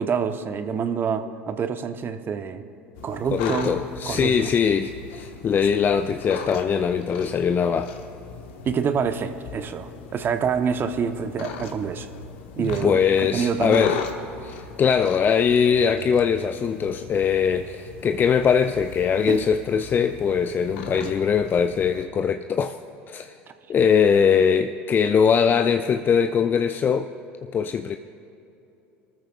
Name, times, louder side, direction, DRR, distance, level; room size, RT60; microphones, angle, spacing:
voice 1, 0.0-2.6 3.0-4.3 8.6-12.1 12.6-13.8 19.3-19.4, right 6 dB, 30° right, 9 dB, 0.9 m, -27 dB
sound 1, 2.9-22.1, left 5 dB, 60° left, 1.3 m, -38 dB
voice 2, 3.3-7.9 12.6-14.0 14.4-22.8 23.1-23.3 23.7-27.1 27.5-28.0, left 7 dB, 30° left, 8 dB, 0.5 m, -21 dB
26.5 x 13.5 x 2.4 m, 2.9 s
figure-of-eight pair, 70°, 7 cm